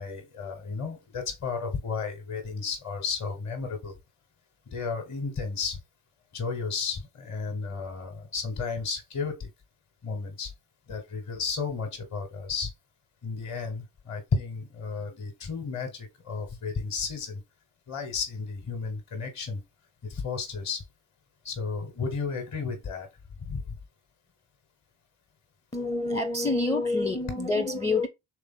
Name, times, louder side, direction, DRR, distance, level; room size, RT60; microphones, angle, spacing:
voice 1, 0.0-3.9 4.7-5.8 6.3-9.5 10.0-10.5 10.9-12.7 13.2-17.4 17.9-19.6 20.0-20.8 21.4-23.1 23.4-23.6, left 5 dB, 40° left, 1.3 m, -33 dB
voice 2, 25.7-28.1, left 2 dB, 10° left, 0.6 m, -27 dB
3.4 x 3.3 x 3.7 m
hypercardioid pair, 65°, 42 cm